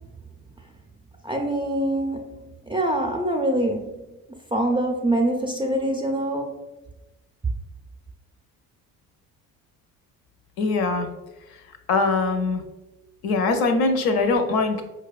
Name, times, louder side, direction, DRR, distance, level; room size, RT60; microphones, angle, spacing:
voice 1, 1.2-2.4 2.7-4.0 4.5-6.6, right 1 dB, 10° right, 1 dB, 0.4 m, -24 dB
voice 2, 10.6-11.1 11.9-12.6 13.2-14.8, left 3 dB, 60° left, 7 dB, 0.6 m, -22 dB
4.4 x 2.2 x 2.4 m, 1.0 s
hypercardioid pair, 60°, 42 cm